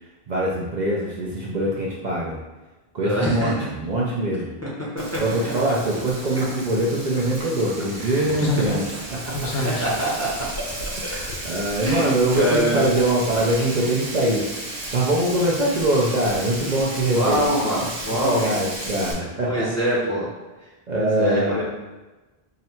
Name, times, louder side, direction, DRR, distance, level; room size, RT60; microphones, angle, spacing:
voice 1, 0.3-2.4 2.9-4.5 5.2-8.8 9.2-9.6 11.0-14.6 14.9-17.4 18.2-19.7 20.9-21.6, right 1 dB, 50° right, -4 dB, 0.6 m, -23 dB
voice 2, 3.0-3.5 4.9-5.0 8.0-8.7 9.5-10.4 10.8-10.9 11.8-12.9 17.1-18.6 19.4-20.3 20.9-21.6, equal, 15° left, -6 dB, 0.7 m, -24 dB
Frying (food), 5.0-19.1, right 1 dB, 65° right, 1.2 m, -34 dB
Slam, 8.4-11.9 12.2-12.4, left 2 dB, 80° left, 0.8 m, -30 dB
3.8 x 2.2 x 4.2 m, 1.1 s
omnidirectional pair, 1.1 m